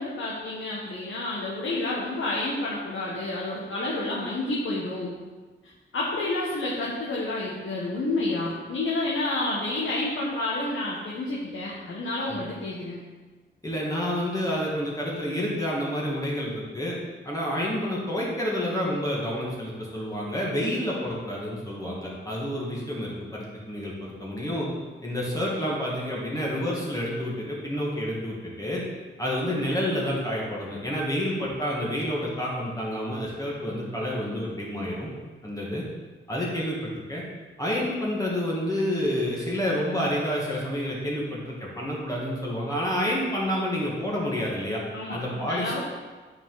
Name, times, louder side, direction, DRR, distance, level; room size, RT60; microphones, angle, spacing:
voice 1, 0.0-5.2 5.9-13.0 44.9-45.8, left 2 dB, 75° left, -5 dB, 1.3 m, -29 dB
voice 2, 13.6-17.0 17.2-24.7 25.0-28.8 29.2-35.1 35.4-35.8 36.3-37.2 37.6-44.8 45.1-45.8, equal, 15° left, -5 dB, 1.9 m, -29 dB
8.8 x 4.8 x 4.0 m, 1.3 s
cardioid pair, 85°, 21 cm